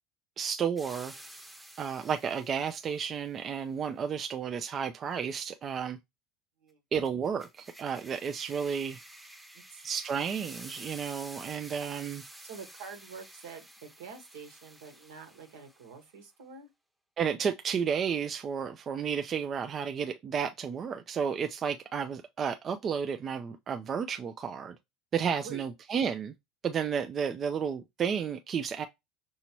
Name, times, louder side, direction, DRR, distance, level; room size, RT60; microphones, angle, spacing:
voice 1, 0.4-1.1 1.8-6.0 6.9-9.0 9.8-12.2 17.2-24.8 25.1-26.3 26.6-28.9, right 7 dB, 35° right, 0.4 m, -32 dB
sound 1, 0.8-3.1 7.0-16.0, right 1 dB, 5° right, 0.8 m, -50 dB
voice 2, 12.4-16.7 25.4-25.6, right 5 dB, 75° right, 1.2 m, -47 dB
5.8 x 2.7 x 3.0 m
hypercardioid pair, 80°, 0 cm